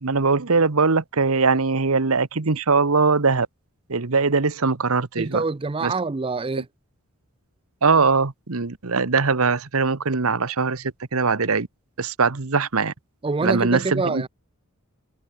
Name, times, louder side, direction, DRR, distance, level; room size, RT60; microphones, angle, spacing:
voice 1, 0.0-3.5 3.9-5.4 5.8-5.9 7.8-11.7 12.0-12.9 13.4-14.3, right 4 dB, 70° right, 1.1 m, -21 dB
voice 2, 5.2-6.7 13.2-14.3, right 3 dB, 25° right, 0.5 m, -25 dB
head